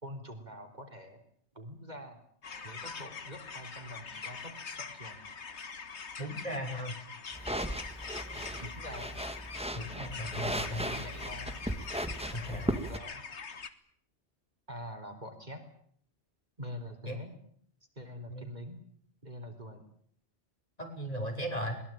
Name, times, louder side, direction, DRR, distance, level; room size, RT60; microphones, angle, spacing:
voice 1, 0.0-1.2 1.5-2.2 2.6-5.2 8.3-9.2 9.8-11.6 12.2-13.2 14.7-15.6 16.6-17.4 18.0-18.8 19.2-19.8, equal, 40° right, 4 dB, 3.9 m, -45 dB
sound 1, 2.4-13.7, left 5 dB, 75° left, 1.8 m, -44 dB
voice 2, 6.2-7.0 9.7-10.9 12.3-12.7 17.0-17.2 18.3-18.5 20.8-21.8, equal, 35° left, 1 dB, 6.4 m, -37 dB
sound 2, 7.3-13.0, equal, 5° right, 1.9 m, -37 dB
22.0 x 22.0 x 9.1 m, 0.64 s
omnidirectional pair, 1.2 m